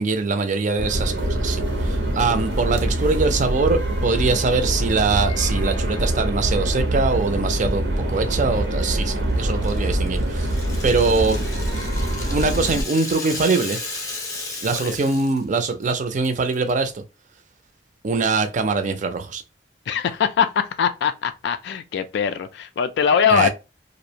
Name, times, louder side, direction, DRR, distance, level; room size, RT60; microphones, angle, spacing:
voice 1, 0.0-10.5 10.8-11.4 12.3-13.8 14.6-17.0 18.0-19.4 23.3-23.5, right 4 dB, 45° right, 0.4 m, -23 dB
sound 1, 0.8-12.8, right 1 dB, 85° right, 0.6 m, -24 dB
Rattle (instrument), 9.6-15.4 15.7-15.9 16.2-16.7, left 3 dB, 20° left, 0.6 m, -34 dB
voice 2, 19.9-23.5, left 7 dB, 70° left, 0.3 m, -22 dB
2.5 x 2.0 x 2.7 m
head